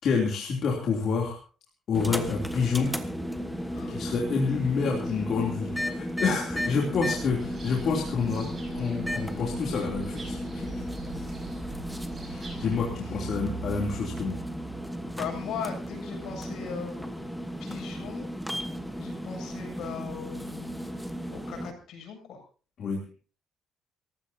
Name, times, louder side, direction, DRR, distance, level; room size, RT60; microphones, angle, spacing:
voice 1, 0.0-1.4 1.9-2.9 3.9-8.5 8.7-10.8 12.2-14.4 22.8-23.0, left 5 dB, 45° left, -1 dB, 3.1 m, -28 dB
sound 1, 1.9-21.7, equal, ahead, 1.2 m, -34 dB
sound 2, 7.1-12.9, right 3 dB, 20° right, 5.6 m, -43 dB
voice 2, 12.9-13.9 15.1-17.3 17.6-18.3 19.0-20.9 21.3-22.4, left 7 dB, 65° left, 4 dB, 7.4 m, -39 dB
29.5 x 15.0 x 2.8 m, 0.38 s
cardioid pair, 180°, 0 cm